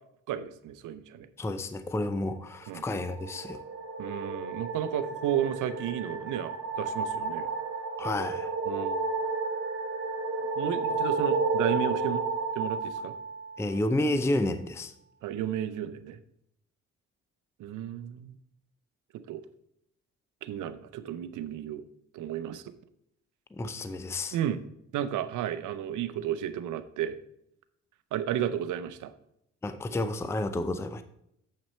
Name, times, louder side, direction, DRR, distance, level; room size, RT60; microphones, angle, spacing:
voice 1, 0.3-1.3 2.7-2.8 4.0-7.5 8.7-9.0 10.6-12.2 12.5-13.1 15.2-16.2 17.6-18.4 19.3-19.4 20.4-21.8 22.1-22.6 24.3-24.6 24.9-27.2 28.1-29.1, right 10 dB, 85° right, 12 dB, 0.7 m, -33 dB
voice 2, 1.4-3.6 8.0-8.6 13.6-14.9 23.5-24.4 29.6-31.0, left 1 dB, 10° left, 11 dB, 0.5 m, -30 dB
sound 1, 2.6-14.0, right 3 dB, 45° right, 1.6 m, -32 dB
7.8 x 5.9 x 4.3 m, 0.76 s
cardioid pair, 90°, 30 cm